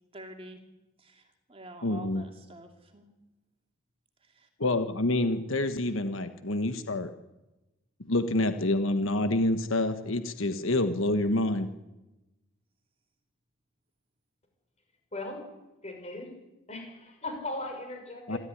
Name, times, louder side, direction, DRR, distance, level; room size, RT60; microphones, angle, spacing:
voice 1, 0.1-0.6 1.0-3.1, right 1 dB, 25° right, 4 dB, 2.7 m, -47 dB
voice 2, 1.8-2.2 4.6-7.1 8.1-11.7 18.3-18.4, left 2 dB, 75° left, 9 dB, 1.4 m, -27 dB
voice 3, 15.1-15.4 15.8-16.3 16.7-18.4, left 2 dB, 30° left, 4 dB, 6.5 m, -38 dB
26.5 x 13.5 x 10.0 m, 1.0 s
head